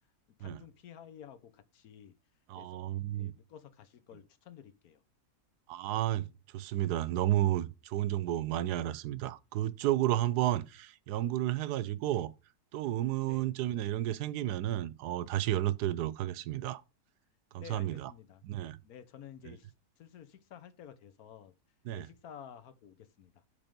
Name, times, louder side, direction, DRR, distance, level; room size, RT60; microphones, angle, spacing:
voice 1, 0.4-2.1 2.6-2.8 3.1-5.0 13.2-13.5 17.6-18.4 18.8-21.5 21.9-23.4, left 9 dB, 70° left, 1.3 m, -52 dB
voice 2, 2.5-3.3 5.7-6.3 6.5-12.3 12.7-16.8 17.5-18.1 18.5-18.8 19.5-19.6 21.9-22.1, right 13 dB, 85° right, 1.1 m, -32 dB
8.2 x 3.6 x 5.3 m
omnidirectional pair, 1.7 m